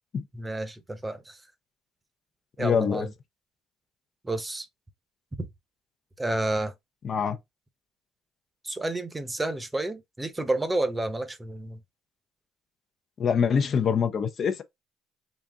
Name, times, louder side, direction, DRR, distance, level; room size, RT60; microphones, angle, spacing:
voice 1, 0.3-1.4 2.6-3.1 4.2-4.7 5.4-5.5 6.2-6.7 8.6-11.8, right 2 dB, 15° right, 0.9 m, -30 dB
voice 2, 2.6-3.1 7.0-7.4 13.2-14.6, left 6 dB, 50° left, 0.6 m, -24 dB
4.1 x 2.4 x 3.6 m
supercardioid pair, 70°, 0 cm